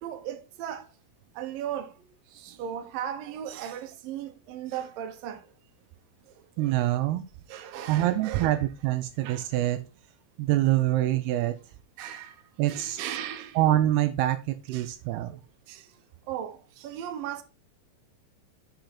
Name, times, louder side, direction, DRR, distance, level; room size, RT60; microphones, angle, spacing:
voice 1, 0.0-0.9 1.4-2.0 2.3-5.4 6.6-6.8 7.5-8.7 12.0-12.4 12.7-13.6 14.7-14.9 15.7-15.9 16.3-17.4, right 10 dB, 70° right, 2.3 m, -37 dB
voice 2, 6.6-7.2 7.9-9.8 10.4-11.6 12.6-13.0 13.6-15.4, right 14 dB, 85° right, 2.3 m, -25 dB
8.1 x 5.8 x 4.2 m
omnidirectional pair, 5.2 m